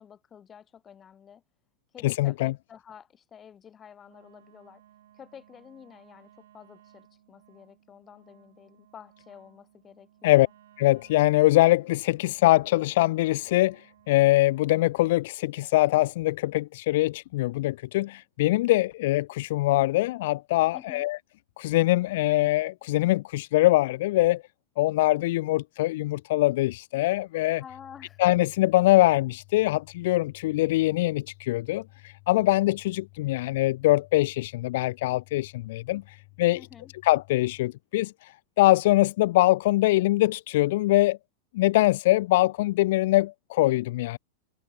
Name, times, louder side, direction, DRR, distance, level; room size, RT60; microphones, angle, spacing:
voice 1, 0.0-1.4 1.9-4.8 5.1-10.5 20.7-21.1 27.6-28.2 36.5-36.9, left 8 dB, 20° left, 6.4 m, -50 dB
voice 2, 2.0-2.5 10.2-10.5 10.8-21.2 21.6-24.4 24.8-27.6 28.2-36.6 37.0-41.2 41.5-44.2, left 18 dB, 60° left, 0.4 m, -23 dB
Wind instrument woodwind instrument, 4.0-15.0, right 12 dB, 80° right, 4.6 m, -59 dB
sound 1, 27.7-37.7, left 37 dB, 40° left, 3.3 m, -54 dB
supercardioid pair, 165°, 0 cm